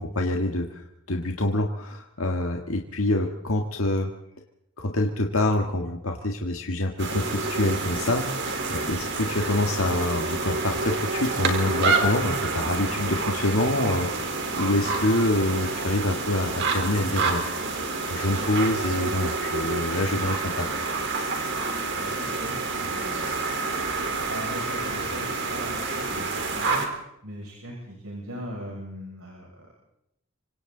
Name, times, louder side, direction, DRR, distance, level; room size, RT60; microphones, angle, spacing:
voice 1, 0.0-4.1 4.8-17.4 18.1-20.7, left 1 dB, 70° left, 2 dB, 1.7 m, -26 dB
sound 1, 7.0-26.9, right 3 dB, 55° right, 3.9 m, -28 dB
voice 2, 22.0-23.5 24.1-26.8 27.2-29.7, right 1 dB, 75° right, -2 dB, 6.3 m, -39 dB
26.5 x 25.5 x 3.9 m, 0.80 s
head